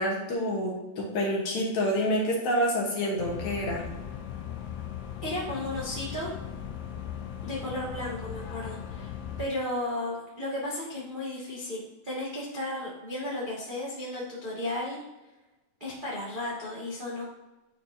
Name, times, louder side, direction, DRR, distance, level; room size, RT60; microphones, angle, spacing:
voice 1, 0.0-3.8, equal, 65° left, -2 dB, 2.2 m, -28 dB
sound 1, 3.2-9.5, left 9 dB, 80° left, 2.1 m, -38 dB
voice 2, 5.2-6.3 7.4-9.1 9.4-15.0 15.8-17.2, left 1 dB, 45° right, -6 dB, 0.6 m, -34 dB
10.5 x 4.2 x 2.7 m, 1.1 s
omnidirectional pair, 4.1 m